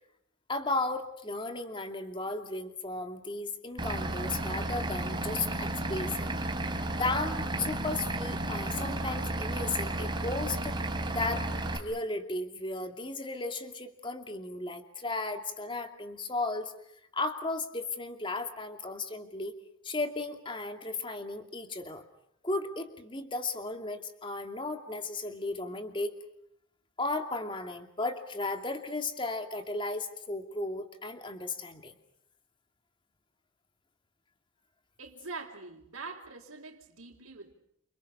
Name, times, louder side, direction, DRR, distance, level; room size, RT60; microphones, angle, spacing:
voice 1, 0.5-6.3 7.0-10.8 11.1-11.5 11.7-16.7 17.1-19.5 19.8-22.0 22.4-26.1 27.0-31.9, left 2 dB, 25° left, 2.6 m, -35 dB
Vehicle / Engine, 3.8-11.8, right 2 dB, 20° right, 2.9 m, -33 dB
voice 2, 35.0-37.5, right 3 dB, 80° right, 4.1 m, -44 dB
30.0 x 29.5 x 5.7 m
head